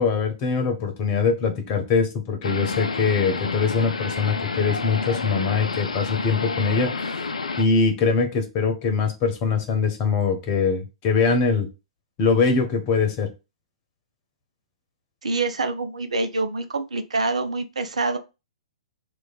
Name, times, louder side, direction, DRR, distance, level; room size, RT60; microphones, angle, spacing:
voice 1, 0.0-6.9 7.6-11.7 12.2-13.3, left 5 dB, 35° left, 1.0 m, -22 dB
sound 1, 2.4-7.6, left 4 dB, 75° left, 0.5 m, -29 dB
voice 2, 15.2-18.2, right 3 dB, 75° right, 0.6 m, -26 dB
3.1 x 2.5 x 4.0 m
figure-of-eight pair, 115°, 3 cm